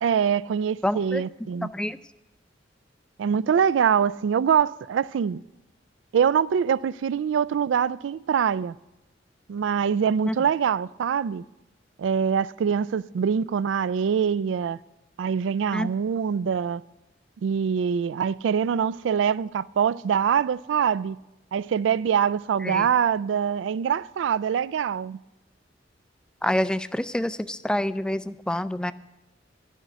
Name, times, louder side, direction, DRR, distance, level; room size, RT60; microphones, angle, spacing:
voice 1, 0.0-1.7 3.2-5.4 6.1-8.7 9.5-11.4 12.0-14.8 15.2-16.8 17.4-21.2 21.5-25.2, right 7 dB, 80° right, 0.3 m, -24 dB
voice 2, 0.8-1.2 1.7-2.0 10.2-10.3 15.7-15.9 22.6-22.9 26.4-28.9, left 1 dB, 5° left, 0.3 m, -27 dB
12.0 x 6.4 x 9.1 m
head